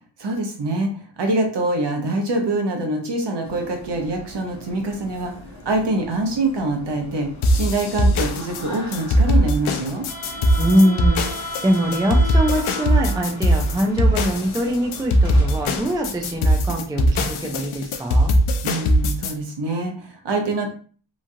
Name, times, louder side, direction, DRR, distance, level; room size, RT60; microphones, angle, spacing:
voice 1, 0.2-0.9 1.2-5.3 5.6-7.3 7.5-10.1 18.6-20.7, right 2 dB, 60° right, 2 dB, 0.8 m, -24 dB
sound 1, 3.4-16.5, left 1 dB, 35° left, 0.9 m, -36 dB
sound 2, 7.4-19.3, equal, 80° left, 0.5 m, -20 dB
voice 2, 10.6-18.3, equal, 10° right, 2 dB, 0.4 m, -23 dB
3.0 x 2.4 x 2.6 m, 0.42 s
wide cardioid pair, 120°, 48 cm